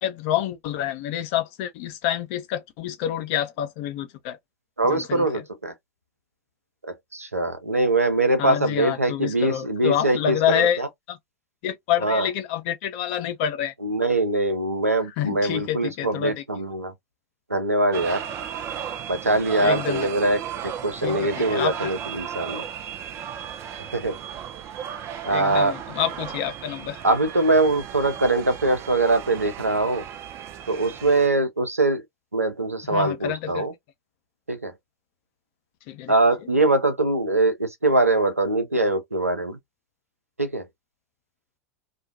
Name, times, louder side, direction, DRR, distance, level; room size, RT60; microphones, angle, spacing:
voice 1, 0.0-4.4 4.9-5.2 8.4-10.8 11.1-11.2 11.6-13.7 15.2-16.4 19.6-20.1 21.0-21.9 25.3-27.0 32.9-33.7 35.9-36.1, left 10 dB, 50° left, 0.6 m, -27 dB
voice 2, 4.8-5.7 7.1-10.9 12.0-12.3 13.8-16.9 17.5-18.3 19.1-22.7 23.8-24.2 25.2-25.8 27.0-30.0 30.7-32.0 32.3-33.7 34.5-34.7 36.1-39.6 40.4-40.7, right 2 dB, 90° right, 0.6 m, -22 dB
sound 1, 17.9-31.3, right 9 dB, 35° right, 0.4 m, -35 dB
2.3 x 2.2 x 2.6 m
figure-of-eight pair, 85°, 8 cm